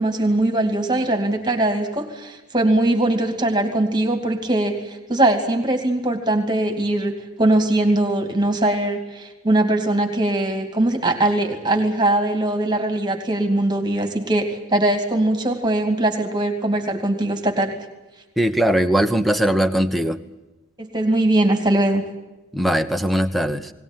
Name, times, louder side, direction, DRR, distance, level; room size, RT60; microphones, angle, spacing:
voice 1, 0.0-17.7 20.8-22.0, right 1 dB, 20° right, 5 dB, 2.5 m, -21 dB
voice 2, 18.4-20.2 22.5-23.7, right 1 dB, ahead, 9 dB, 1.0 m, -20 dB
21.0 x 18.5 x 8.9 m, 1.1 s
head